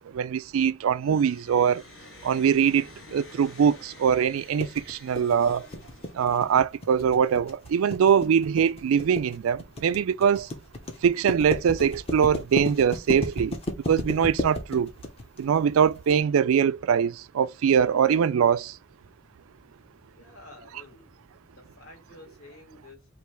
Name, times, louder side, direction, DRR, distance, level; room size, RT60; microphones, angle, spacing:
voice 1, 0.0-1.8 2.2-5.7 6.1-10.5 11.0-13.6 13.9-14.9 15.4-18.8, right 7 dB, 85° right, 0.3 m, -23 dB
sound 1, 0.9-6.6, left 2 dB, 60° left, 1.6 m, -50 dB
sound 2, 4.6-16.1, left 1 dB, 30° left, 0.8 m, -33 dB
voice 2, 20.1-21.1 21.5-23.1, left 2 dB, 90° left, 2.0 m, -50 dB
3.2 x 2.7 x 4.5 m
head